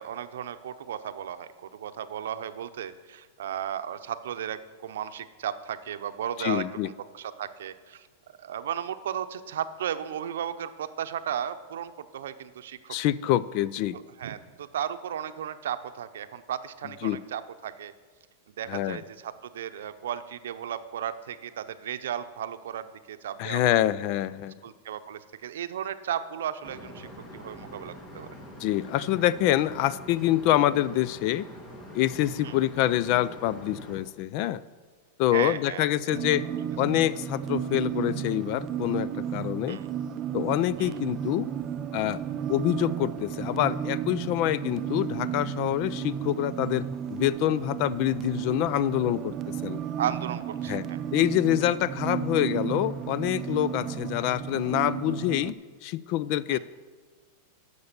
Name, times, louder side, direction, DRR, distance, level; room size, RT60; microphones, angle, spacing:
voice 1, 0.0-13.0 14.2-17.9 18.6-23.8 24.6-27.1 27.3-28.3 32.4-32.5 35.3-35.9 39.7-39.9 40.8-41.0 50.0-51.0 56.5-56.6, right 9 dB, 85° right, 11 dB, 0.6 m, -35 dB
voice 2, 6.4-6.9 12.9-14.0 17.0-17.2 18.7-19.0 23.4-24.5 28.6-31.5 31.9-34.6 35.2-36.4 36.8-39.8 40.3-41.5 41.9-42.2 42.5-49.8 50.7-50.9 51.1-56.6, left 13 dB, 50° left, 18 dB, 0.4 m, -26 dB
sound 1, 26.6-34.0, equal, 25° left, 1.9 m, -44 dB
sound 2, 36.1-55.5, right 9 dB, 30° right, 0.5 m, -33 dB
11.5 x 6.7 x 6.7 m, 1.5 s
supercardioid pair, 145°, 0 cm